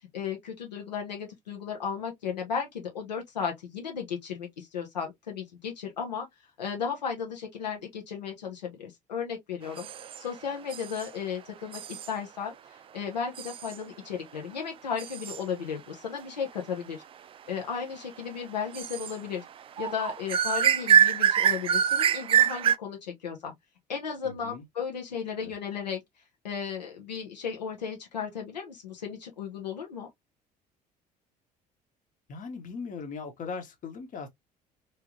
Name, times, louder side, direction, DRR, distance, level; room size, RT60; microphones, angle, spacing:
voice 1, 0.1-6.3 6.6-9.9 10.2-17.0 17.5-19.4 19.8-23.5 23.9-26.0 26.4-30.1, left 6 dB, 80° left, 0.9 m, -35 dB
sound 1, 9.8-10.3 10.7-11.1 11.7-12.1 13.3-13.8 15.0-15.4 18.7-19.1 19.5-19.6 19.8-22.8, right 9 dB, 25° right, 0.3 m, -25 dB
voice 2, 24.2-24.6 25.3-25.5 32.3-34.3, left 5 dB, 40° left, 1.2 m, -39 dB
3.4 x 3.3 x 2.8 m
figure-of-eight pair, 60°, 21 cm